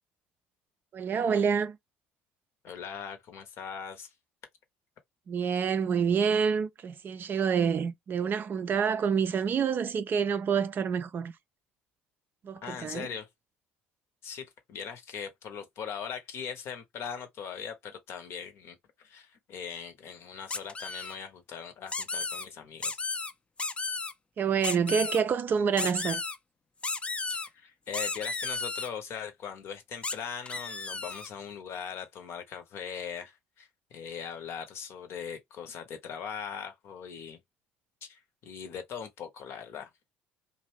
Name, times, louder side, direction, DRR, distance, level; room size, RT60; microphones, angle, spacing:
voice 1, 0.9-1.8 5.3-11.3 12.4-13.1 24.4-26.2, right 6 dB, 40° right, 0.4 m, -27 dB
voice 2, 2.6-4.1 12.6-13.3 14.2-23.0 27.3-37.4 38.0-39.9, left 7 dB, 55° left, 0.7 m, -40 dB
sound 1, 20.5-21.1 21.9-22.4 22.8-23.3 23.6-24.1 24.6-25.2 25.8-26.4 26.8-27.5 27.9-28.9 30.0-30.1 30.5-31.3, left 3 dB, 20° left, 0.4 m, -33 dB
2.6 x 2.1 x 3.1 m
hypercardioid pair, 55°, 5 cm